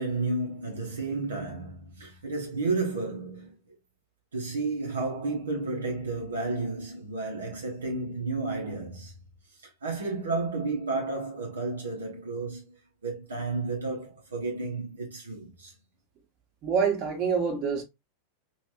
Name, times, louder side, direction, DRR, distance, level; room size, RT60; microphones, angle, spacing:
voice 1, 0.0-3.6 4.3-9.1 9.6-15.7, right 3 dB, 70° right, 1.2 m, -32 dB
voice 2, 16.6-17.8, right 6 dB, 35° right, 1.4 m, -26 dB
3.4 x 3.3 x 2.9 m
figure-of-eight pair, 90°, 0 cm